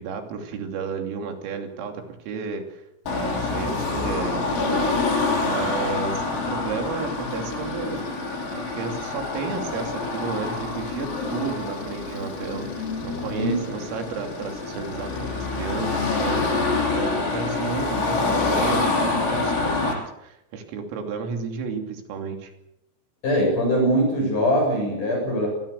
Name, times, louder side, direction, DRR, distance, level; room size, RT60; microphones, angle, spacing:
voice 1, 0.0-8.0 8.5-22.5, right 6 dB, 85° right, 4 dB, 5.6 m, -32 dB
Car passing by / Traffic noise roadway noise / Engine, 3.1-19.9, left 3 dB, 85° left, 8.6 m, -26 dB
voice 2, 23.2-25.5, equal, 40° left, -1 dB, 8.8 m, -22 dB
26.5 x 20.0 x 7.0 m, 0.83 s
omnidirectional pair, 5.9 m